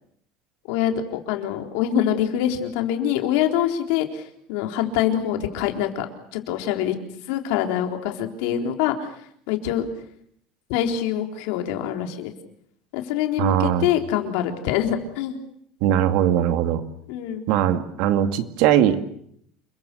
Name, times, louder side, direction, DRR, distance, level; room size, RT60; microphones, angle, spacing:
voice 1, 0.7-7.0 7.3-9.1 9.5-9.9 10.7-12.3 12.9-15.4 17.1-17.5, left 10 dB, 75° left, 4 dB, 3.9 m, -25 dB
voice 2, 13.4-13.9 15.8-16.8 17.5-19.0, right 10 dB, 65° right, 8 dB, 2.2 m, -20 dB
29.0 x 22.5 x 6.9 m, 0.69 s
cardioid pair, 160°, 0 cm